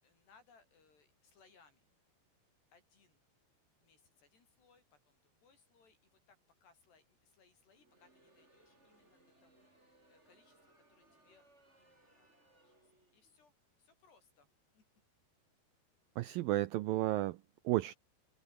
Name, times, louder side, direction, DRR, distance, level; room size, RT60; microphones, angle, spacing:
voice 1, 0.0-1.9 2.7-3.2 3.8-11.5 11.8-13.5 13.8-14.8, left 5 dB, 75° left, 8.9 m, -69 dB
Crowd, 7.7-13.4, right 2 dB, 15° right, 6.0 m, -68 dB
voice 2, 16.2-17.9, right 16 dB, 80° right, 2.1 m, -33 dB
omnidirectional pair, 4.9 m